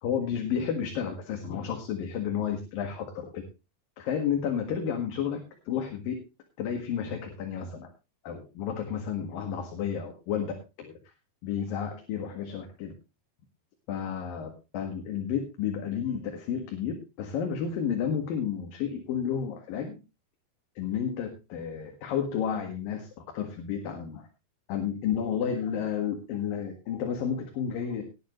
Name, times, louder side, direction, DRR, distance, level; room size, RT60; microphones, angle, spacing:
voice 1, 0.0-3.4 4.0-6.2 6.6-7.9 8.2-10.9 11.4-12.9 13.9-20.0 20.8-24.3 24.7-28.0, left 8 dB, 65° left, 4 dB, 3.4 m, -31 dB
18.5 x 9.6 x 3.1 m, 0.29 s
omnidirectional pair, 4.4 m